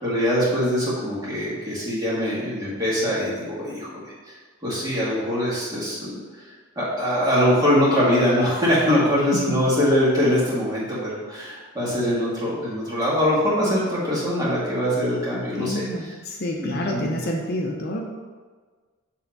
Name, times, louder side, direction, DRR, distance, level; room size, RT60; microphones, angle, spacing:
voice 1, 0.0-6.2 6.8-15.8 16.6-17.1, equal, 20° right, -8 dB, 2.1 m, -23 dB
voice 2, 15.5-18.0, equal, 45° left, 0 dB, 0.7 m, -28 dB
7.4 x 3.5 x 5.3 m, 1.4 s
head